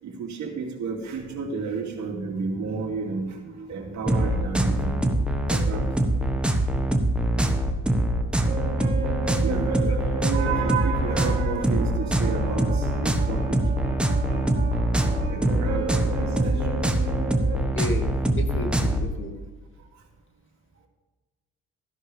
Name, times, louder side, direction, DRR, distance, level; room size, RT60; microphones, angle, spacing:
voice 1, 0.0-5.0 5.5-6.2 9.0-13.6 15.2-16.9, right 5 dB, 70° right, 0 dB, 2.6 m, -32 dB
sound 1, 4.1-19.1, right 1 dB, 5° right, 1.3 m, -24 dB
sound 2, 8.5-17.6, right 5 dB, 30° right, 3.9 m, -34 dB
voice 2, 17.7-19.3, left 2 dB, 40° left, 4 dB, 2.0 m, -33 dB
14.0 x 11.0 x 3.4 m, 1.3 s
cardioid pair, 90°, 30 cm